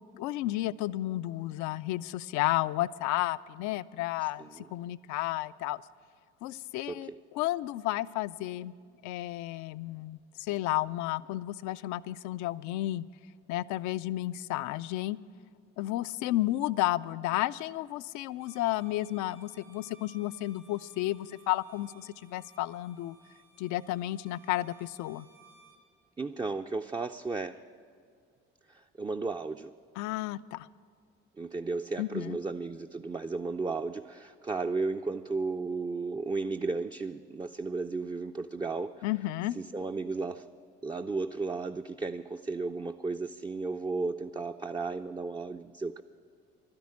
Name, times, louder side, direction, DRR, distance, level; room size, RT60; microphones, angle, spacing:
voice 1, 0.1-5.8 6.4-8.7 9.0-13.0 13.5-15.2 15.8-23.2 23.6-25.3 30.0-30.7 32.0-32.4 39.0-39.6, left 16 dB, 70° left, 17 dB, 0.4 m, -32 dB
voice 2, 6.9-7.2 26.2-27.6 28.7-29.7 31.4-39.0 39.6-40.5 40.8-46.0, right 3 dB, 15° right, 5 dB, 0.4 m, -34 dB
Bowed string instrument, 18.3-25.8, right 4 dB, 70° right, 2.8 m, -60 dB
12.0 x 10.5 x 8.4 m, 2.2 s
hypercardioid pair, 55°, 30 cm